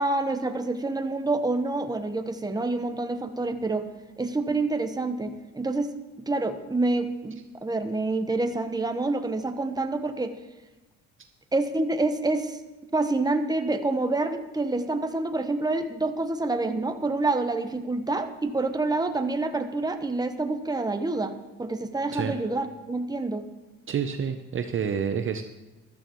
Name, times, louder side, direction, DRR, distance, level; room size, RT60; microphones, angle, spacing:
voice 1, 0.0-3.8 4.2-10.3 11.5-12.6 12.9-21.3 21.6-23.4, right 2 dB, 15° right, 7 dB, 1.1 m, -27 dB
voice 2, 23.9-25.4, right 7 dB, 40° right, 7 dB, 0.7 m, -28 dB
14.0 x 12.5 x 3.1 m, 1.1 s
cardioid pair, 85°, 30 cm